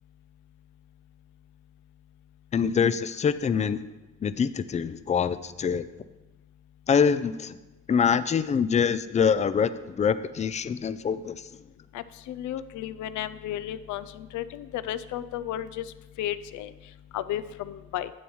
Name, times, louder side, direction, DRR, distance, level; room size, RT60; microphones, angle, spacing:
voice 1, 2.5-3.9 4.2-5.9 6.9-7.6 7.9-11.5, left 6 dB, 25° left, 13 dB, 0.3 m, -25 dB
voice 2, 11.9-16.7 17.1-18.1, left 12 dB, 75° left, 14 dB, 0.5 m, -34 dB
10.0 x 7.2 x 3.1 m, 1.1 s
cardioid pair, 90°, 30 cm